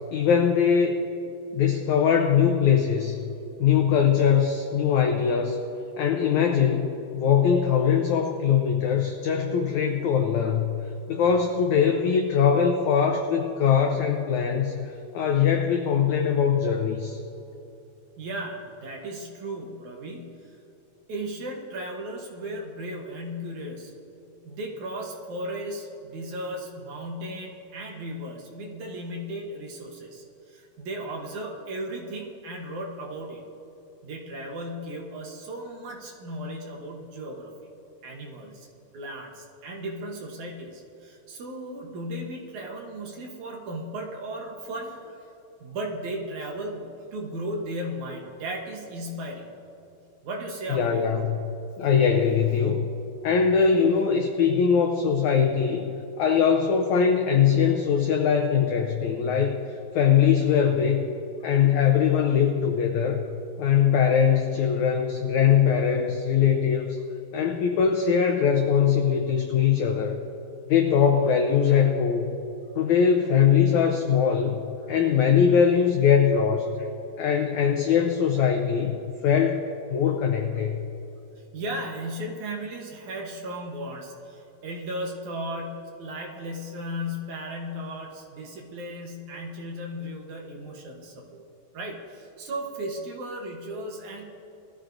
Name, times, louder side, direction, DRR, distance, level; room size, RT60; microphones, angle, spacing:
voice 1, 0.1-1.0 1.5-3.2 3.6-5.6 6.0-10.7 11.1-17.2 50.7-51.4 51.8-52.9 53.2-55.9 56.2-61.1 61.4-63.2 63.6-67.0 67.3-70.2 70.7-72.4 72.7-74.6 74.9-76.9 77.2-79.6 79.9-80.9, left 7 dB, 80° left, 3 dB, 1.7 m, -22 dB
voice 2, 18.2-20.6 21.1-24.0 24.5-33.4 34.0-37.5 38.0-38.7 38.9-45.3 45.6-49.5 50.2-51.2 81.4-91.5 91.7-94.3, right 1 dB, 65° right, 0 dB, 2.2 m, -36 dB
21.0 x 14.0 x 2.6 m, 2.9 s
omnidirectional pair, 4.3 m